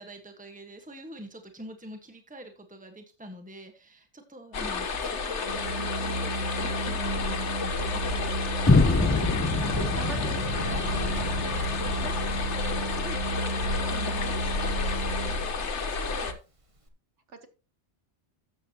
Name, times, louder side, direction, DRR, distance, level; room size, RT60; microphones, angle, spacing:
voice 1, 0.0-8.4 9.6-10.4 10.7-16.4, right 1 dB, 5° right, 5 dB, 1.5 m, -45 dB
sound 1, 4.5-16.3, left 4 dB, 80° left, 1.5 m, -31 dB
Organ, 5.4-15.7, right 1 dB, 30° right, 1.4 m, -33 dB
sound 2, 8.7-12.6, left 3 dB, 20° left, 0.4 m, -26 dB
voice 2, 9.5-11.3 17.3-17.5, right 3 dB, 90° right, 7 dB, 1.9 m, -43 dB
13.5 x 8.3 x 3.0 m, 0.31 s
omnidirectional pair, 1.2 m